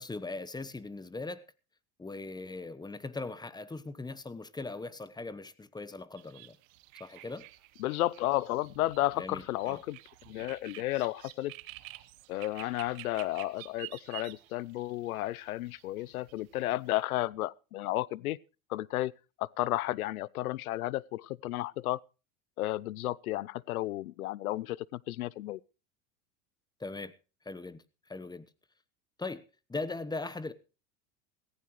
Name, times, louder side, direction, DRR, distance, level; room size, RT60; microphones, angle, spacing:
voice 1, 0.0-1.5 2.0-6.6 7.0-7.5 9.2-9.8 26.8-27.2 27.4-28.5 29.2-30.5, left 3 dB, 10° left, 1.0 m, -40 dB
sound 1, 6.2-17.0, right 18 dB, 70° right, 1.2 m, -50 dB
voice 2, 7.8-10.0 10.3-11.5 12.3-18.4 18.7-19.1 19.4-22.0 22.6-25.6, left 16 dB, 85° left, 0.6 m, -33 dB
17.5 x 15.5 x 3.1 m
hypercardioid pair, 95°, 42 cm